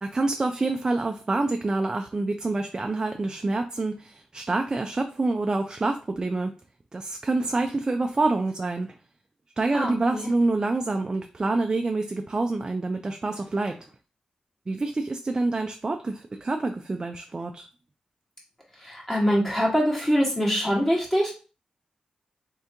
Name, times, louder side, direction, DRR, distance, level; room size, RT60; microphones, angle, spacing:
voice 1, 0.0-6.5 6.9-9.0 9.6-13.9 14.7-17.7, right 2 dB, 30° right, 5 dB, 0.4 m, -27 dB
voice 2, 9.7-10.3 18.8-21.3, equal, 15° left, -4 dB, 1.8 m, -24 dB
3.7 x 3.3 x 2.9 m, 0.35 s
wide cardioid pair, 105°, 2 cm